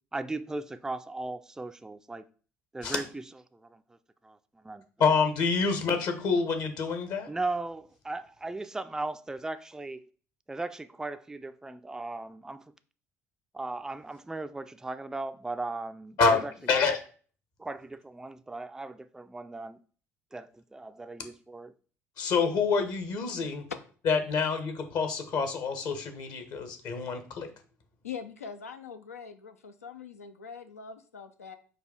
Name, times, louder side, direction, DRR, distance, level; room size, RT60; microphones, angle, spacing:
voice 1, 0.1-2.3 2.7-3.2 3.5-4.0 4.2-4.9 7.3-10.1 10.5-12.7 13.5-16.5 17.6-19.8 20.3-21.7, right 2 dB, 5° right, 0.3 m, -37 dB
voice 2, 5.0-7.3 16.2-16.4 16.7-17.0 22.2-23.6 24.0-27.5, left 5 dB, 55° left, 1.0 m, -27 dB
voice 3, 28.0-31.6, left 6 dB, 85° left, 0.4 m, -43 dB
4.7 x 2.3 x 4.8 m
figure-of-eight pair, 55°, 8 cm